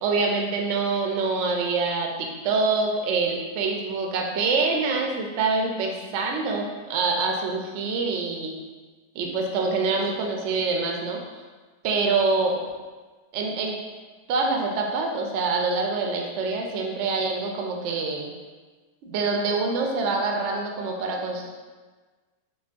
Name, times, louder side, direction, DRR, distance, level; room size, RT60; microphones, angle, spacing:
voice 1, 0.0-8.5 9.1-11.4 11.8-12.6 13.3-13.8 14.3-18.3 19.0-21.5, right 4 dB, 75° right, 1 dB, 0.6 m, -25 dB
4.9 x 2.2 x 2.5 m, 1.4 s
omnidirectional pair, 1.7 m